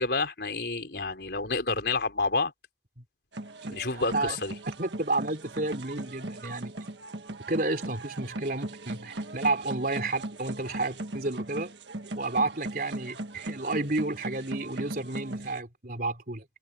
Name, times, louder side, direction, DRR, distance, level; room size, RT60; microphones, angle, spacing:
voice 1, 0.0-2.5 3.7-4.5, left 3 dB, 70° left, 3.7 m, -29 dB
sound 1, 3.3-15.6, right 1 dB, 90° right, 1.6 m, -38 dB
voice 2, 3.6-4.4 4.8-6.7 7.5-11.7 12.1-16.4, right 2 dB, 55° right, 4.0 m, -31 dB
head